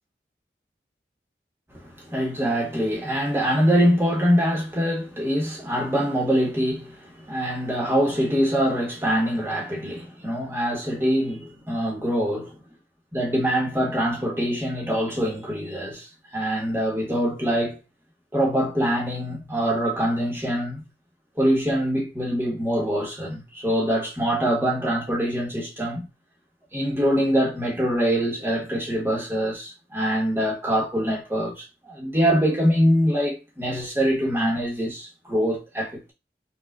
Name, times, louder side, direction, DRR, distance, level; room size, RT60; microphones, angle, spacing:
voice 1, 1.7-12.6 13.1-16.1 16.3-17.8 18.3-20.8 21.4-26.1 26.7-36.1, equal, 15° right, 0.9 m, -24 dB
4.4 x 2.3 x 2.3 m
head